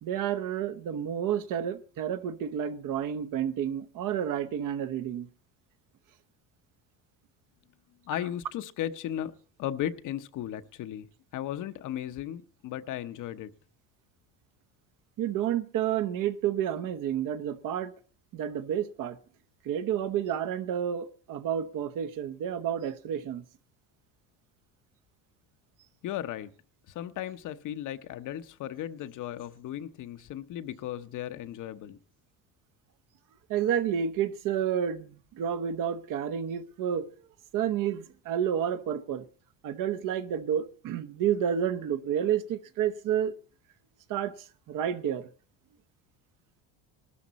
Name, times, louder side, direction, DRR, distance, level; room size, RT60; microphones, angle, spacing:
voice 1, 0.0-5.3 15.2-17.9 18.3-19.2 19.6-23.4 33.5-37.1 37.5-39.2 39.6-43.3 44.1-44.3 44.7-45.3, right 9 dB, 55° right, 1.0 m, -30 dB
voice 2, 8.1-9.3 9.6-11.1 11.3-13.5 26.0-26.5 26.9-32.0, left 11 dB, 50° left, 0.9 m, -36 dB
19.0 x 12.5 x 4.1 m
cardioid pair, 135°, 40 cm